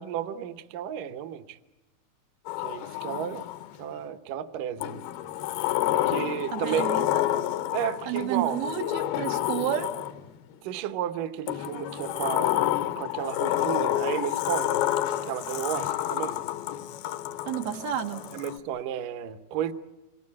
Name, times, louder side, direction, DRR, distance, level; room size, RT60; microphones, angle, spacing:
voice 1, 0.0-1.6 2.6-3.4 3.8-5.0 6.1-7.0 7.7-8.6 10.6-14.9 15.3-16.4 18.3-19.7, right 10 dB, 70° right, 2.4 m, -32 dB
Sliding door, 2.5-3.8 4.8-10.4 11.5-18.6, left 13 dB, 80° left, 2.9 m, -29 dB
voice 2, 6.5-7.1 8.1-9.9 17.5-18.2, right 9 dB, 90° right, 3.8 m, -30 dB
27.0 x 22.0 x 8.6 m
omnidirectional pair, 4.3 m